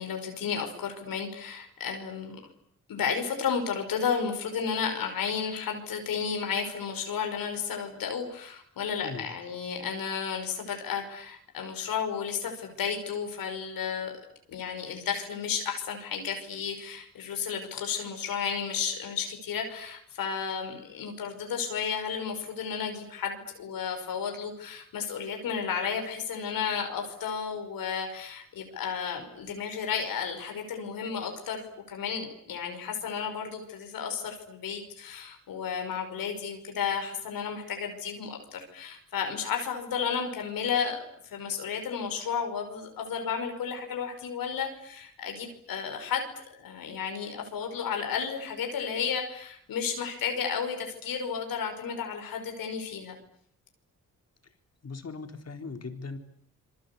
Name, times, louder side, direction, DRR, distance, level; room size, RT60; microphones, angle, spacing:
voice 1, 0.0-2.4 2.9-14.1 14.5-46.3 46.5-53.2, left 6 dB, 90° left, 4 dB, 5.4 m, -33 dB
voice 2, 9.0-9.3 54.8-56.2, left 4 dB, 50° left, 6 dB, 4.3 m, -39 dB
27.0 x 23.5 x 8.5 m, 0.68 s
cardioid pair, 70°, 34 cm